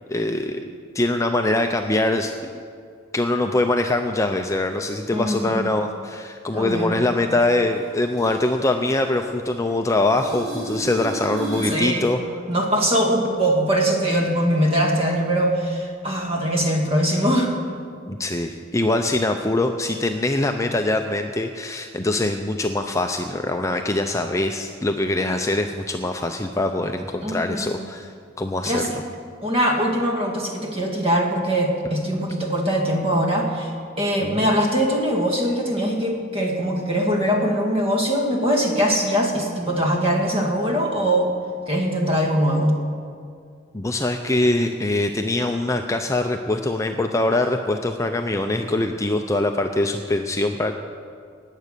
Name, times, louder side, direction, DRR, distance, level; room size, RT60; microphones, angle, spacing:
voice 1, 0.1-0.6 0.9-2.3 3.1-12.2 18.1-28.9 34.2-34.5 43.7-50.7, left 2 dB, 15° left, 5 dB, 0.5 m, -23 dB
voice 2, 5.1-5.7 6.5-7.0 11.7-12.1 12.5-17.6 27.2-27.7 28.6-29.0 29.4-41.3 41.7-42.8, equal, 30° right, 0 dB, 2.2 m, -22 dB
sound 1, 7.7-9.7 10.0-11.9 17.7-17.8, right 2 dB, 50° right, 3.5 m, -34 dB
18.5 x 8.3 x 6.8 m, 2.2 s
head